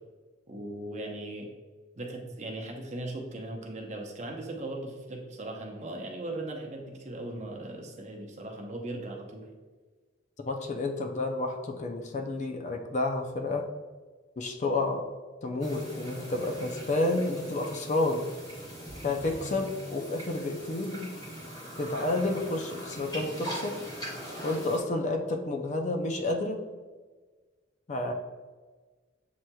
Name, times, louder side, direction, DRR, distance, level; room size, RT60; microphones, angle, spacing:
voice 1, 0.5-1.5 1.9-9.5, right 1 dB, 35° right, 1 dB, 0.7 m, -38 dB
voice 2, 10.5-13.7 14.4-15.1 15.4-18.2 19.0-21.1 21.8-23.8 24.4-26.6 27.9-28.1, left 2 dB, 40° left, 4 dB, 0.4 m, -30 dB
sound 1, 15.6-24.8, equal, 20° left, 1.2 m, -41 dB
7.5 x 2.9 x 2.2 m, 1.4 s
head